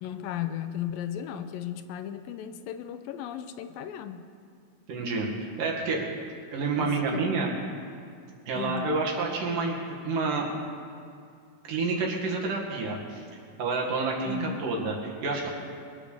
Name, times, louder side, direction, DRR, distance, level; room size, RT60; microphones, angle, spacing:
voice 1, 0.0-4.2 6.8-7.5 8.5-9.0 14.2-14.6, left 10 dB, 85° left, 9 dB, 2.4 m, -36 dB
voice 2, 4.9-5.3 5.6-6.0 6.5-7.5 8.5-9.8 10.0-10.5 11.7-13.2 13.6-15.5, right 4 dB, 65° right, -2 dB, 3.6 m, -28 dB
22.5 x 9.3 x 6.9 m, 2.3 s
omnidirectional pair, 4.2 m